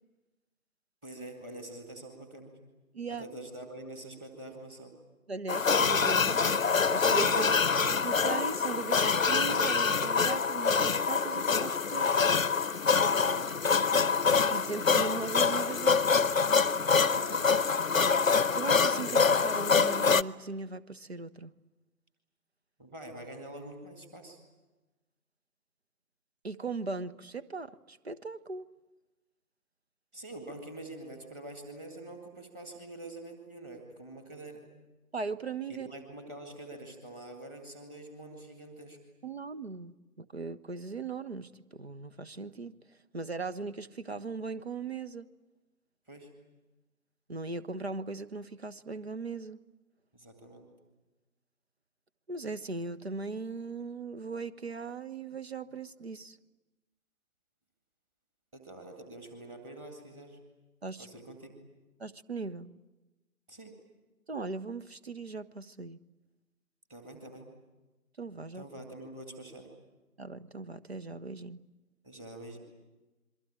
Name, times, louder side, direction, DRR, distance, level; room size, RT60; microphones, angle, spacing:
voice 1, 1.0-2.6 3.1-5.0 7.3-7.5 13.2-13.5 17.1-17.5 22.8-24.4 30.1-34.6 35.7-39.0 46.1-46.3 50.1-50.7 58.5-60.4 61.0-61.5 63.5-63.7 66.9-67.4 68.5-69.7 72.0-72.6, right 1 dB, 10° right, 2.0 m, -45 dB
voice 2, 2.9-3.3 5.3-6.4 6.9-7.5 7.9-12.1 14.5-16.2 18.6-21.5 26.4-28.7 35.1-35.9 39.2-42.8 43.1-45.3 47.3-49.6 52.3-56.4 60.8-61.1 62.0-62.7 64.3-66.0 68.2-68.6 70.2-71.6, right 4 dB, 45° right, 1.0 m, -38 dB
sound 1, 5.5-20.2, left 5 dB, 60° left, 0.8 m, -25 dB
27.5 x 23.0 x 8.7 m
figure-of-eight pair, 155°, 46 cm